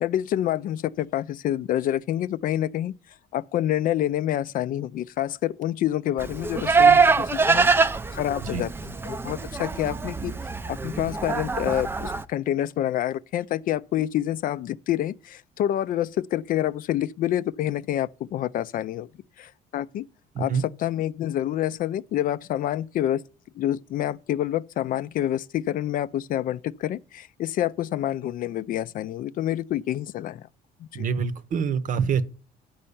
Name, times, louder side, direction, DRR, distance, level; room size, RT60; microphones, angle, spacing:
voice 1, 0.0-2.9 3.3-7.7 8.1-10.3 10.7-19.1 19.4-20.1 20.4-20.5 20.8-23.2 23.6-30.5 30.9-31.0, left 12 dB, 55° left, 0.4 m, -27 dB
Livestock farm animals working animals, 6.2-12.2, right 5 dB, 15° right, 0.4 m, -23 dB
voice 2, 30.9-32.3, right 6 dB, 50° right, 0.8 m, -26 dB
7.6 x 5.5 x 6.9 m
cardioid pair, 110°, 17 cm